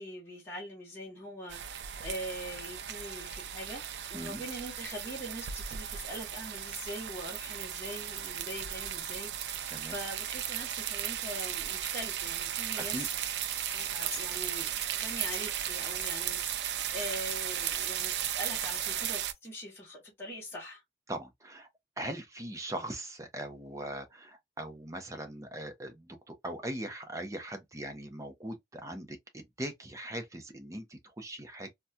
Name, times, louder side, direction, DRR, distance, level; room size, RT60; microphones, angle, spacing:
voice 1, 0.0-3.8 4.1-13.1 13.7-20.8, equal, 15° left, 1.0 m, -43 dB
sound 1, 1.5-19.3, right 10 dB, 80° right, 0.4 m, -36 dB
sound 2, 12.7-19.5, left 4 dB, 40° left, 1.5 m, -49 dB
voice 2, 12.8-13.1 21.1-21.7 22.0-31.7, right 1 dB, 20° right, 0.6 m, -40 dB
4.1 x 2.2 x 2.2 m
head